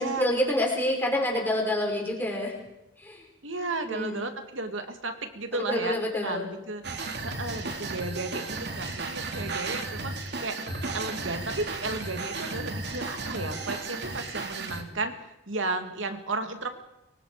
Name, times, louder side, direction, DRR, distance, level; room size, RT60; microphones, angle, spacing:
voice 1, 0.0-2.6 3.0-3.2 3.9-4.2 5.5-6.4, left 1 dB, 10° left, -1 dB, 6.1 m, -27 dB
voice 2, 3.4-6.8 7.2-10.6 10.9-16.7, right 3 dB, 80° right, 6 dB, 2.6 m, -34 dB
sound 1, 6.8-14.8, right 3 dB, 60° right, 2.8 m, -34 dB
25.5 x 23.5 x 5.2 m, 0.88 s
head